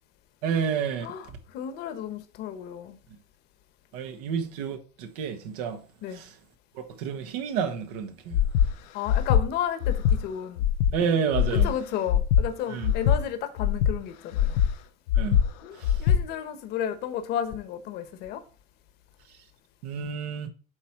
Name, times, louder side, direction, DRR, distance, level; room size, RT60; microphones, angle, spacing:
voice 1, 0.4-1.1 3.9-5.8 6.1-6.3 6.7-8.4 10.9-11.7 12.7-12.9 15.1-15.4 15.8-16.0 19.8-20.5, right 7 dB, 75° right, 1.5 m, -30 dB
voice 2, 1.0-3.0 6.0-6.2 8.9-10.7 11.5-14.6 15.6-18.4, left 9 dB, 55° left, 1.2 m, -33 dB
Breathing, 8.3-8.7 9.1-9.4 9.8-10.2 10.6-10.9 11.3-11.7 12.1-12.4 12.8-13.2 13.6-13.9 14.3-14.7 15.1-15.4 15.8-16.2, left 9 dB, 75° left, 0.9 m, -22 dB
8.2 x 3.2 x 5.9 m
supercardioid pair, 115°, 20 cm